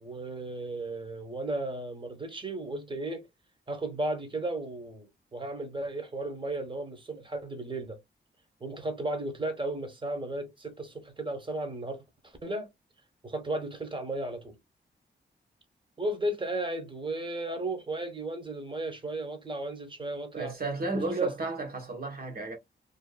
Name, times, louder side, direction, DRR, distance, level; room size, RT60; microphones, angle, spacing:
voice 1, 0.0-3.3 3.7-8.0 8.6-12.7 13.2-14.5 16.0-20.5 20.9-21.3, right 2 dB, 25° right, 1.0 m, -34 dB
voice 2, 20.3-22.6, right 2 dB, 50° right, 1.2 m, -33 dB
2.6 x 2.5 x 2.2 m
cardioid pair, 75°, 19 cm